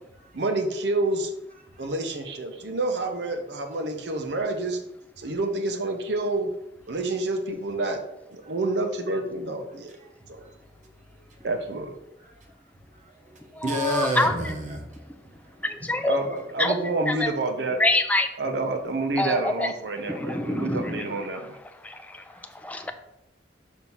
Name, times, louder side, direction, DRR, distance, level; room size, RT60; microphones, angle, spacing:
voice 1, 0.3-1.3 1.8-4.8 5.2-6.5 6.9-8.0 8.3-10.0 10.3-10.4 11.4-11.9 16.0-17.8 18.4-21.6, right 2 dB, 65° right, 5 dB, 0.7 m, -28 dB
voice 2, 12.9-15.9 22.3-22.4, equal, 40° right, 2 dB, 1.0 m, -32 dB
voice 3, 13.5-14.3 15.6-17.4 17.8-18.3 19.2-19.7 20.0-21.5 21.8-22.2 22.5-22.9, left 1 dB, 10° left, 7 dB, 0.4 m, -26 dB
6.1 x 2.8 x 5.6 m, 0.87 s
head